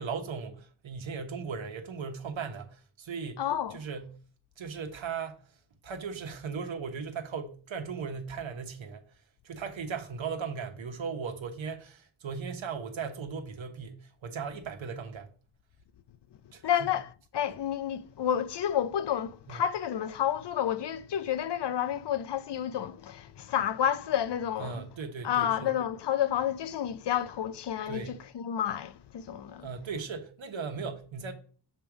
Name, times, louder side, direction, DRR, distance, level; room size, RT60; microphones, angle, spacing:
voice 1, 0.0-3.4 3.7-4.2 4.6-5.4 5.8-9.0 9.4-15.3 16.5-16.9 19.5-19.6 24.6-25.7 27.9-28.2 29.6-31.3, right 5 dB, 80° right, 1.3 m, -37 dB
voice 2, 3.4-3.8 16.6-24.8 25.2-29.7, left 10 dB, 65° left, 0.6 m, -30 dB
7.4 x 3.5 x 6.0 m
cardioid pair, 60°, 46 cm